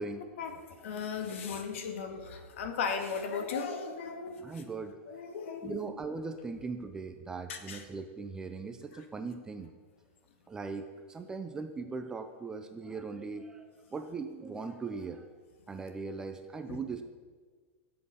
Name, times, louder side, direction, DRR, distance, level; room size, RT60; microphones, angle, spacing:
voice 1, 0.4-4.6 5.1-5.8 7.5-7.8 8.9-9.0 16.7-16.8, left 5 dB, 65° left, 6 dB, 2.0 m, -37 dB
voice 2, 4.4-5.0 5.6-9.7 10.5-15.3 15.7-17.0, right 4 dB, 10° right, 7 dB, 0.6 m, -39 dB
15.5 x 7.8 x 7.0 m, 1.5 s
supercardioid pair, 165°, 7 cm